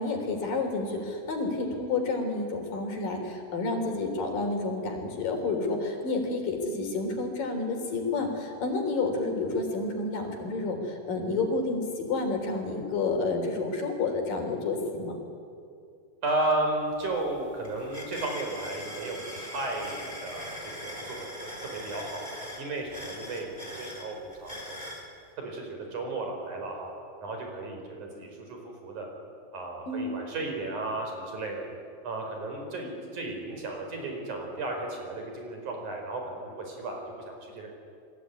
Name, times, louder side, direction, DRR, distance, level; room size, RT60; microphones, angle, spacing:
voice 1, 0.0-15.2 29.9-30.1, left 3 dB, 70° left, 3 dB, 5.3 m, -30 dB
voice 2, 16.2-21.2 21.6-22.2 22.6-24.9 25.4-26.9 27.2-29.1 29.5-31.7 32.0-37.7, right 2 dB, 55° right, 2 dB, 6.1 m, -34 dB
sound 1, 16.5-16.6 16.9-25.1, equal, 15° right, 4.1 m, -41 dB
29.0 x 20.5 x 9.7 m, 2.4 s
omnidirectional pair, 4.1 m